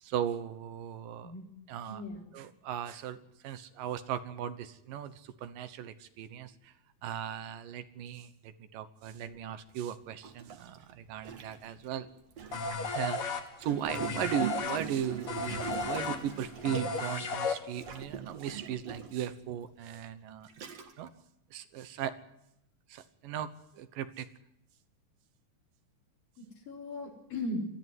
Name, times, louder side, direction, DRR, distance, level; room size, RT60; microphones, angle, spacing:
voice 1, 0.0-1.3 1.7-2.0 2.3-3.2 3.4-6.7 7.0-12.1 12.9-13.2 13.6-20.5 21.0-21.1 21.5-22.1 22.9-23.5 23.8-24.3, right 10 dB, 80° right, 12 dB, 2.8 m, -37 dB
voice 2, 1.9-2.3 19.8-19.9 26.4-27.6, left 2 dB, 85° left, 0 dB, 5.9 m, -38 dB
Gurgling, 9.3-9.4 10.2-12.9 13.6-17.2 17.8-19.3 20.0-20.1 20.5-21.1, right 7 dB, 55° right, 2.6 m, -42 dB
sound 1, 12.5-18.0, left 3 dB, 50° left, 2.4 m, -34 dB
20.5 x 14.0 x 9.4 m, 0.83 s
omnidirectional pair, 3.8 m